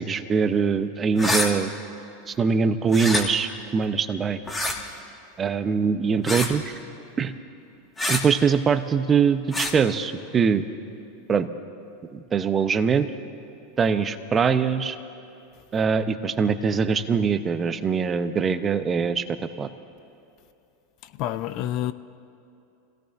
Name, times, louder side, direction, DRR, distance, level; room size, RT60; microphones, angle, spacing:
voice 1, 0.0-1.7 2.3-4.4 5.4-6.7 7.2-7.3 8.1-10.6 11.3-11.5 12.1-13.1 13.8-15.0 15.7-19.2 19.6-19.7, right 6 dB, 25° right, 0.8 m, -23 dB
sound 1, 1.1-1.5 2.9-3.2 4.5-4.8 6.2-6.5 8.0-8.2 9.5-9.7, left 2 dB, 15° left, 1.8 m, -25 dB
voice 2, 21.0-21.9, left 12 dB, 50° left, 0.5 m, -28 dB
27.0 x 17.0 x 2.6 m
hypercardioid pair, 105°, 0 cm